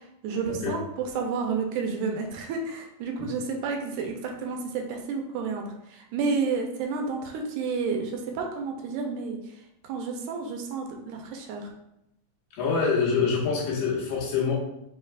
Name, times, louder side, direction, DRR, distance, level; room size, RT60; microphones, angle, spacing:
voice 1, 0.2-0.8 1.1-9.4 9.8-11.7, right 5 dB, 85° right, 3 dB, 2.1 m, -30 dB
voice 2, 12.5-14.5, left 5 dB, 90° left, -4 dB, 2.7 m, -25 dB
5.6 x 3.3 x 2.4 m, 0.83 s
omnidirectional pair, 3.6 m